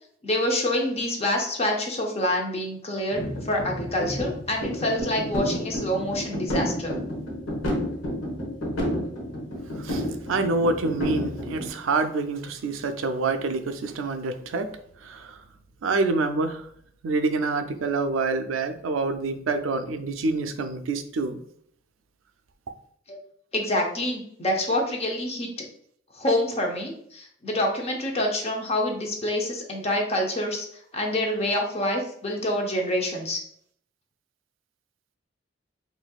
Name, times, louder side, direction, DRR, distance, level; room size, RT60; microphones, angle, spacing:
voice 1, 0.2-6.9 23.1-23.2 23.5-25.5 26.1-30.7 30.9-33.4, left 1 dB, 30° left, 1 dB, 0.6 m, -26 dB
sound 1, 3.1-11.7, equal, 90° left, 1.0 m, -30 dB
voice 2, 9.8-14.7 15.0-15.4 15.8-16.6 17.0-21.4, right 3 dB, 90° right, 8 dB, 0.4 m, -27 dB
4.0 x 2.6 x 2.3 m, 0.65 s
head